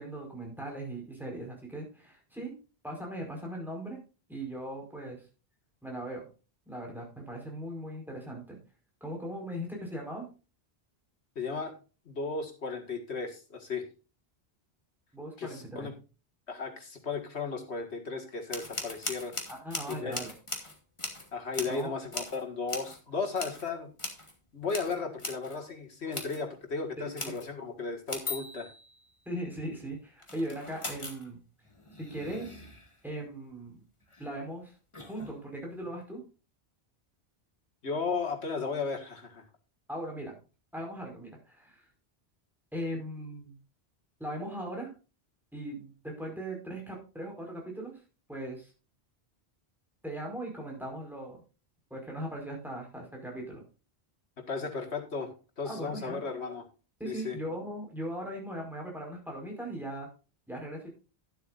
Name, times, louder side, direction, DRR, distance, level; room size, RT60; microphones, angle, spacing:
voice 1, 0.0-2.5 2.8-4.0 4.3-5.2 5.8-6.3 6.7-8.6 9.0-10.3 15.1-15.9 19.6-20.3 21.7-22.0 27.0-27.3 29.2-31.4 32.0-32.6 33.0-33.8 34.2-34.7 35.1-36.2 39.9-40.3 40.7-41.8 42.7-43.6 44.2-44.9 45.5-48.0 48.3-48.7 50.0-51.4 51.9-53.6 55.6-56.2 57.0-60.1 60.5-60.9, right 1 dB, ahead, -1 dB, 5.0 m, -39 dB
voice 2, 11.4-11.7 12.1-13.9 15.4-15.9 16.5-19.3 20.0-20.2 21.3-23.9 24.5-28.7 37.8-39.4 54.4-56.7 57.0-57.4, left 4 dB, 85° left, 4 dB, 2.2 m, -35 dB
sound 1, 18.5-21.9 22.1-22.4 22.7-23.0 23.4-23.7 24.0-24.3 24.6-25.6 26.1-26.4 27.2-27.5 28.1-29.1 30.2-31.3 31.7-33.0 34.0-34.3 34.9-35.4, left 2 dB, 30° left, 2.1 m, -40 dB
11.5 x 10.5 x 2.5 m, 0.32 s
omnidirectional pair, 1.1 m